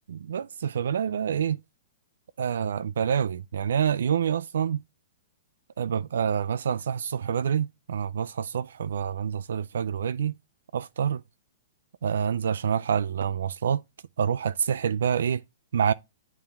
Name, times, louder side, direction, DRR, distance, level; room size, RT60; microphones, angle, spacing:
voice 1, 0.1-1.6 2.4-4.8 5.8-10.3 10.7-11.2 12.0-13.8 14.2-15.4 15.7-15.9, right 8 dB, 75° right, 0.3 m, -27 dB
8.9 x 3.5 x 4.1 m
hypercardioid pair, 175°, 0 cm